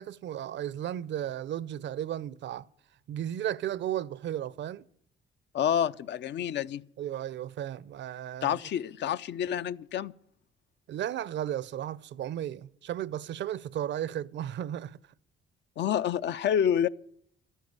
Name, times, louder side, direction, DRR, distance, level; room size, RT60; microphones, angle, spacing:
voice 1, 0.0-2.7 3.1-4.9 7.0-8.6 10.9-15.0, right 11 dB, 65° right, 0.5 m, -34 dB
voice 2, 5.5-6.8 8.4-10.1 15.8-16.9, left 9 dB, 65° left, 0.5 m, -28 dB
12.5 x 10.0 x 9.5 m
cardioid pair, 90°, 20 cm